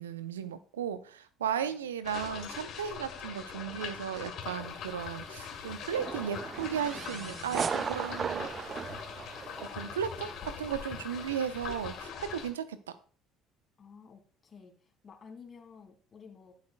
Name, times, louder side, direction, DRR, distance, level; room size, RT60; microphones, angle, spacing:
voice 1, 0.0-8.5 9.6-13.0, right 8 dB, 80° right, 13 dB, 0.6 m, -35 dB
sound 1, 2.0-12.5, left 7 dB, 55° left, 2.2 m, -42 dB
sound 2, 4.4-12.1, left 1 dB, 5° left, 2.5 m, -58 dB
sound 3, 5.9-10.0, right 6 dB, 35° right, 0.5 m, -36 dB
voice 2, 13.8-16.5, left 5 dB, 35° left, 5 dB, 2.3 m, -54 dB
15.0 x 7.6 x 2.2 m, 0.41 s
figure-of-eight pair, 60°, 0 cm